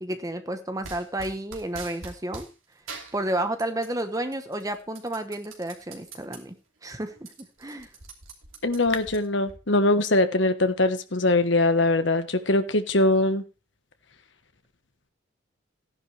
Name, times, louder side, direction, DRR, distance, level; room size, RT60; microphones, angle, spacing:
voice 1, 0.0-2.5 3.1-7.9, right 1 dB, 15° right, 8 dB, 1.0 m, -31 dB
sound 1, 0.8-2.5 2.9-4.0 4.3-6.4 6.8-6.9 7.1-9.6, right 4 dB, 80° right, 3.0 m, -43 dB
voice 2, 8.6-13.4, left 2 dB, 65° left, 9 dB, 1.3 m, -22 dB
14.5 x 10.5 x 3.4 m, 0.31 s
head